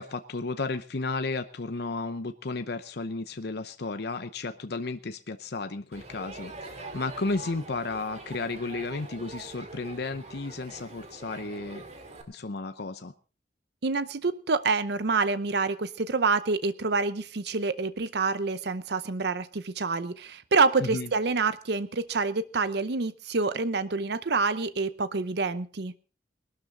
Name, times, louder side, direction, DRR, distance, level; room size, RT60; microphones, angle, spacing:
voice 1, 0.0-11.8 12.3-13.1 20.8-21.1, left 3 dB, 65° left, 9 dB, 0.8 m, -33 dB
Crowd, 5.9-12.2, right 2 dB, 40° right, 2.3 m, -44 dB
voice 2, 13.8-25.9, right 4 dB, 65° right, 14 dB, 0.7 m, -27 dB
20.0 x 12.5 x 3.8 m, 0.36 s
head